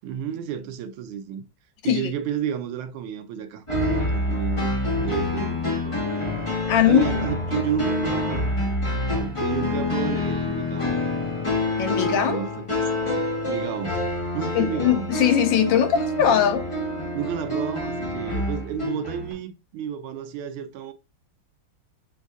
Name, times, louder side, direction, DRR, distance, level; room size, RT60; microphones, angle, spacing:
voice 1, 0.0-1.4 1.8-3.6 4.0-6.4 6.8-8.7 9.1-11.0 11.9-12.5 12.8-14.0 14.3-15.1 17.1-20.9, right 8 dB, 85° right, 1.4 m, -31 dB
sound 1, 3.7-19.3, left 1 dB, 20° left, 1.0 m, -27 dB
voice 2, 6.7-7.1 11.8-12.4 14.5-16.6, left 9 dB, 75° left, 1.2 m, -20 dB
6.3 x 2.6 x 2.3 m
omnidirectional pair, 2.3 m